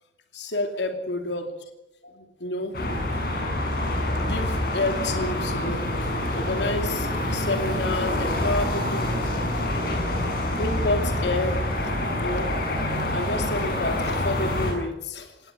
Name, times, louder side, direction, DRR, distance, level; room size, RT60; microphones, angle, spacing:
voice 1, 0.3-1.5 2.0-2.7 3.8-9.6 10.6-12.5 12.9-15.5, left 2 dB, 80° left, 6 dB, 2.7 m, -30 dB
sound 1, 2.7-14.7, left 1 dB, 60° left, 7.1 m, -26 dB
19.0 x 17.5 x 9.5 m, 0.88 s
head